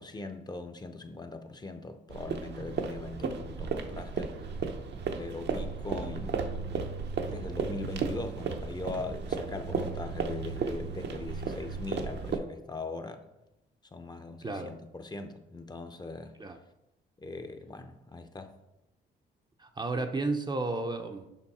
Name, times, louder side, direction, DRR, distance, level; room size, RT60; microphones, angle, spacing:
voice 1, 0.0-4.3 5.2-6.9 7.3-13.2 13.9-16.5 17.2-18.5, left 3 dB, 20° left, 7 dB, 0.7 m, -40 dB
sound 1, 2.1-12.4, right 5 dB, 60° right, 0.8 m, -34 dB
voice 2, 14.4-14.7 16.4-16.6 19.6-21.3, right 3 dB, 20° right, 6 dB, 0.6 m, -32 dB
7.1 x 5.2 x 4.2 m, 0.95 s
cardioid pair, 90°, 20 cm